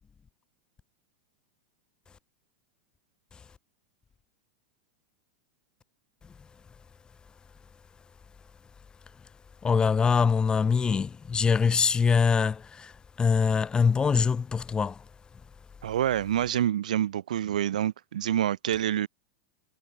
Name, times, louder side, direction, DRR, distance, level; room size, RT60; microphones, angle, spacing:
voice 1, 9.6-15.0, left 5 dB, 20° left, 6.8 m, -24 dB
voice 2, 15.8-19.1, right 11 dB, 75° right, 4.2 m, -27 dB
hypercardioid pair, 95°, 4 cm